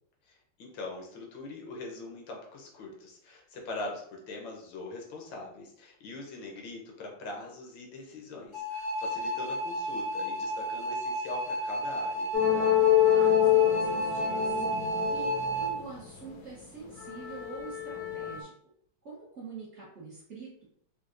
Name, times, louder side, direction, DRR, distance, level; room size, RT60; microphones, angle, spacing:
voice 1, 0.3-12.3, left 2 dB, 85° left, 0 dB, 1.6 m, -42 dB
sound 1, 8.5-15.7, right 1 dB, 40° left, 0.7 m, -32 dB
sound 2, 12.3-16.4 16.9-18.4, left 12 dB, 70° left, 1.0 m, -26 dB
voice 2, 13.1-18.5 19.0-20.6, right 4 dB, 55° right, -7 dB, 0.8 m, -46 dB
4.4 x 2.2 x 2.5 m, 0.68 s
omnidirectional pair, 2.0 m